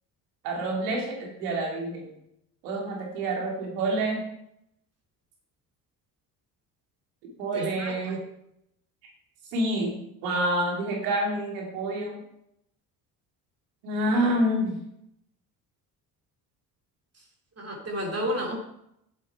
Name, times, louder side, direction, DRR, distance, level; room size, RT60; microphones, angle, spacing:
voice 1, 0.4-2.1 2.6-4.2 7.4-8.2 9.5-9.9 10.2-12.2 13.8-14.7, right 1 dB, 85° right, 0 dB, 2.8 m, -27 dB
voice 2, 7.5-8.2 17.6-18.6, equal, 30° right, 1 dB, 2.6 m, -31 dB
7.7 x 7.3 x 4.5 m, 0.77 s
hypercardioid pair, 65°, 46 cm